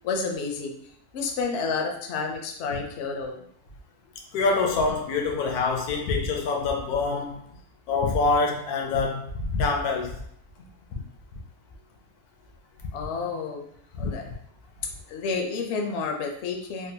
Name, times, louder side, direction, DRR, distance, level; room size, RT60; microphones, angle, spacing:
voice 1, 0.0-0.7 1.1-3.4 12.9-13.6 14.0-14.3 15.1-16.9, left 4 dB, 65° left, 2 dB, 0.7 m, -30 dB
voice 2, 4.3-7.4 7.9-10.2 14.0-14.1, left 3 dB, 85° left, 1 dB, 1.2 m, -25 dB
3.7 x 2.2 x 2.7 m, 0.68 s
omnidirectional pair, 1.6 m